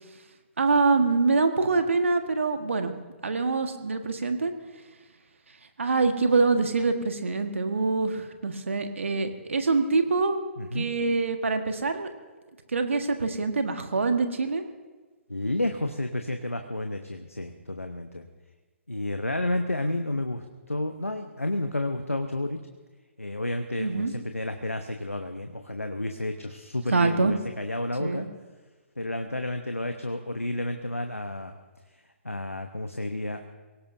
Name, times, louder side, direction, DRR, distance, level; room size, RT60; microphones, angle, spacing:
voice 1, 0.6-2.9 3.2-4.5 5.8-10.4 10.7-12.1 12.7-14.6 23.8-24.1 26.9-27.3 28.0-28.3, right 3 dB, 65° right, 7 dB, 1.4 m, -25 dB
voice 2, 15.3-18.3 18.9-22.6 23.2-28.3 29.0-31.6 32.2-33.4, left 1 dB, 85° left, 6 dB, 0.9 m, -31 dB
23.5 x 17.5 x 2.7 m, 1.3 s
figure-of-eight pair, 125°, 7 cm